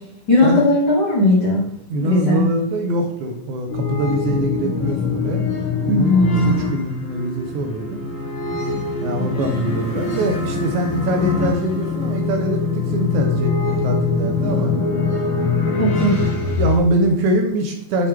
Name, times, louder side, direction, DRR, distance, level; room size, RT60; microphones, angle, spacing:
voice 1, 0.3-1.6 2.0-2.4 5.9-6.7 15.8-16.2, left 1 dB, 80° left, -3 dB, 0.9 m, -17 dB
voice 2, 1.9-5.5 5.9-8.1 9.0-14.7 16.6-18.1, right 1 dB, 75° right, 4 dB, 2.0 m, -23 dB
sound 1, 3.7-16.8, left 4 dB, 45° left, 1.9 m, -23 dB
6.8 x 6.8 x 3.4 m, 0.84 s
omnidirectional pair, 4.1 m